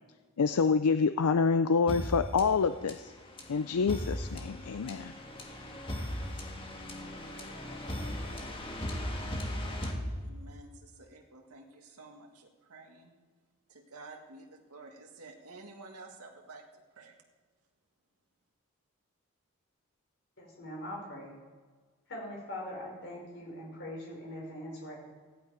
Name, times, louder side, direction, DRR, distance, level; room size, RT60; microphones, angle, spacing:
voice 1, 0.4-3.1 3.5-5.1, left 5 dB, 85° left, 10 dB, 0.5 m, -27 dB
sound 1, 1.9-10.7, equal, 25° left, 1.6 m, -38 dB
voice 2, 10.0-13.1 13.7-16.6 17.0-17.2, right 3 dB, 85° right, 1 dB, 1.9 m, -51 dB
voice 3, 20.4-21.3 22.1-25.0, left 1 dB, 55° left, -2 dB, 5.3 m, -42 dB
15.5 x 11.5 x 5.0 m, 1.5 s
head